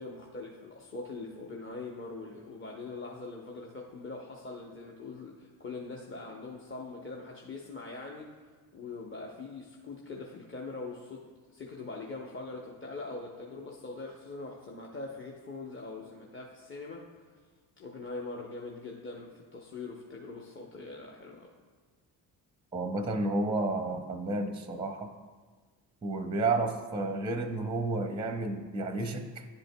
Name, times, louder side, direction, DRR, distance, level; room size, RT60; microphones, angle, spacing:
voice 1, 0.0-8.4 8.7-17.3 17.8-21.5, left 3 dB, 25° left, -1 dB, 0.8 m, -42 dB
voice 2, 22.7-25.1 26.0-29.4, right 2 dB, 10° right, 6 dB, 0.5 m, -31 dB
10.5 x 5.1 x 2.2 m, 1.5 s
hypercardioid pair, 55°, 46 cm